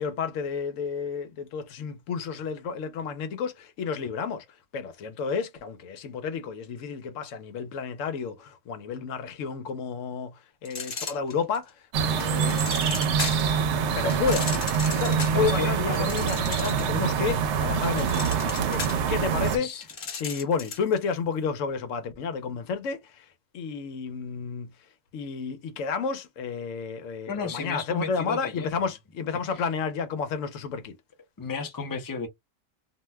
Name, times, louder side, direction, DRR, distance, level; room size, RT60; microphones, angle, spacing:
voice 1, 0.0-4.4 4.7-11.7 12.0-12.6 13.0-13.5 13.8-14.6 14.9-19.7 20.1-23.2 23.5-24.7 25.1-31.0, left 5 dB, 90° left, 1.0 m, -31 dB
sound 1, 10.7-11.7 12.2-13.6 14.1-17.0 17.3-20.9, left 4 dB, 50° left, 1.0 m, -36 dB
sound 2, 11.9-19.6, right 6 dB, 70° right, 0.8 m, -25 dB
voice 2, 15.3-16.3 19.6-19.8 27.3-28.8 29.5-29.6 31.4-32.3, left 5 dB, 25° left, 0.5 m, -33 dB
2.5 x 2.2 x 3.1 m
omnidirectional pair, 1.3 m